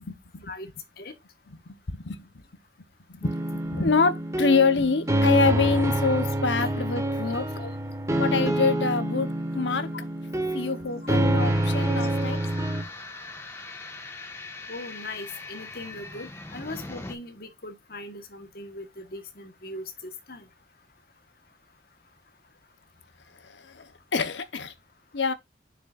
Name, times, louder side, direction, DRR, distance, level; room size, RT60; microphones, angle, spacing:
voice 1, 0.1-0.5 1.5-2.4 3.1-3.3 3.7-7.5 8.2-9.9 10.5-12.4 23.5-23.9 24.1-24.7 25.1-25.3, left 4 dB, 90° left, 1.0 m, -26 dB
sound 1, 3.2-12.8, right 1 dB, 15° right, 1.4 m, -27 dB
sound 2, 11.4-17.1, left 3 dB, 15° left, 1.4 m, -41 dB
voice 2, 14.7-20.4, left 2 dB, 55° left, 1.4 m, -39 dB
9.1 x 6.7 x 2.5 m
head